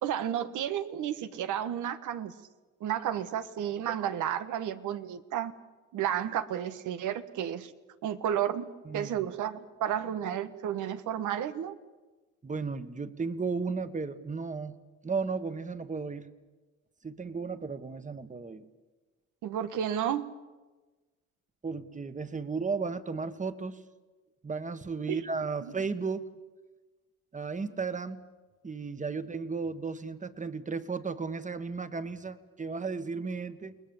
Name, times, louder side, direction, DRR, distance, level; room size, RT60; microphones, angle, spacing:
voice 1, 0.0-2.3 2.8-5.5 5.9-7.7 8.0-11.8 19.4-20.3 25.1-25.2, right 10 dB, 85° right, 10 dB, 1.5 m, -32 dB
voice 2, 8.8-9.2 12.4-14.8 15.0-16.3 17.0-18.7 21.6-23.8 24.4-26.2 27.3-28.2 28.6-33.8, right 4 dB, 25° right, 11 dB, 1.6 m, -34 dB
29.0 x 20.0 x 7.3 m, 1.2 s
cardioid pair, 90°, 30 cm